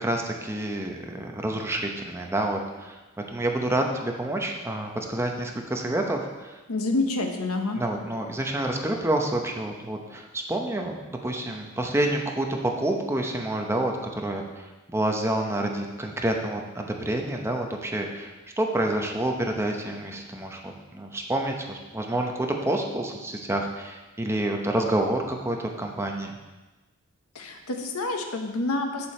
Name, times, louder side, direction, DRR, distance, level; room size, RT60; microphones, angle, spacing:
voice 1, 0.0-3.0 3.3-6.6 7.8-26.3, right 1 dB, 10° right, 2 dB, 0.8 m, -28 dB
voice 2, 6.7-7.8 27.3-29.1, left 2 dB, 80° left, 4 dB, 0.9 m, -28 dB
7.1 x 6.8 x 4.3 m, 1.2 s
head